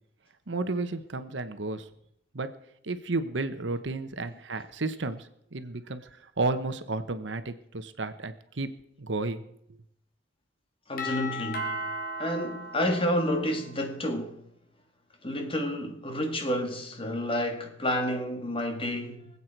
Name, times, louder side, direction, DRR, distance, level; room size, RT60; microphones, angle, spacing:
voice 1, 0.5-1.9 2.3-2.5 2.8-8.7 9.0-9.4, right 3 dB, 70° right, 1.0 m, -32 dB
voice 2, 10.9-11.9 12.2-14.4 15.2-19.3, equal, 30° left, 1.8 m, -30 dB
Doorbell, 11.0-13.8, equal, 50° left, 2.5 m, -36 dB
24.0 x 8.5 x 4.6 m
head